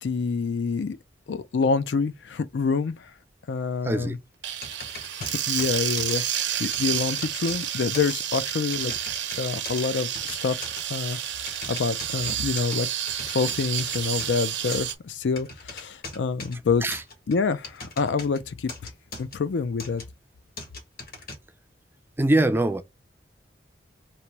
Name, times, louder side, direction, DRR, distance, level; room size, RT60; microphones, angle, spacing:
voice 1, 0.0-1.0 1.3-3.1 3.5-4.2 5.2-6.2 6.6-8.9 9.4-10.6 10.9-11.2 11.7-12.9 13.3-16.8 17.3-18.9 19.2-20.0, left 5 dB, 70° left, 0.4 m, -27 dB
voice 2, 3.8-4.1 16.8-17.0 22.2-22.8, right 1 dB, 10° right, 0.3 m, -22 dB
sound 1, 4.4-14.9, right 10 dB, 70° right, 0.6 m, -30 dB
sound 2, 4.6-6.2 6.7-7.6 7.9-8.1 8.7-9.8 10.1-10.8 11.5-12.8 13.1-14.4 14.7-14.9 15.4-16.6 16.9-18.4 18.7-19.4 19.8-20.0 20.6-21.4, left 3 dB, 55° left, 1.5 m, -39 dB
3.0 x 2.9 x 4.5 m
head